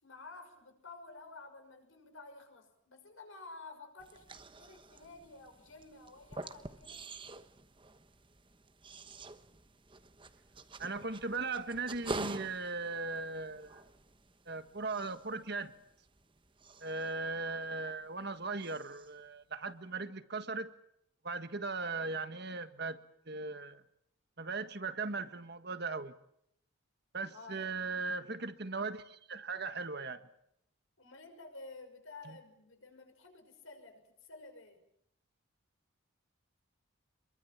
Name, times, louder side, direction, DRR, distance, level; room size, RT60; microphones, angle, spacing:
voice 1, 0.0-7.1 27.3-27.9 31.0-34.8, left 3 dB, 70° left, 6 dB, 6.0 m, -52 dB
sound 1, 4.0-18.3 18.6-19.2, right 2 dB, 25° right, 1.1 m, -47 dB
voice 2, 10.8-13.8 14.5-15.7 16.8-20.7 21.2-23.0 23.3-23.8 24.4-26.1 27.1-30.2 32.2-32.4, right 3 dB, 50° right, 10 dB, 1.5 m, -38 dB
27.0 x 22.5 x 7.4 m, 0.75 s
head